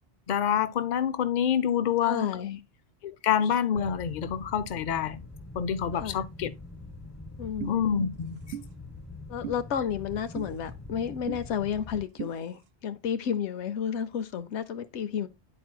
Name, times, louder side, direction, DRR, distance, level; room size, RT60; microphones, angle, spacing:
voice 1, 0.3-2.3 3.0-5.2 5.5-6.5 7.6-8.4, left 8 dB, 50° left, 0.6 m, -27 dB
voice 2, 2.0-2.6 5.9-6.2 7.4-7.8 9.3-15.3, left 8 dB, 85° left, 0.9 m, -31 dB
sound 1, 3.7-12.0, left 3 dB, 15° left, 1.5 m, -44 dB
sound 2, 7.6-7.8 8.5-8.7 9.4-9.6 10.4-10.5 11.3-11.4 12.2-12.3, right 10 dB, 70° right, 0.8 m, -36 dB
11.0 x 4.3 x 2.2 m
omnidirectional pair, 1.1 m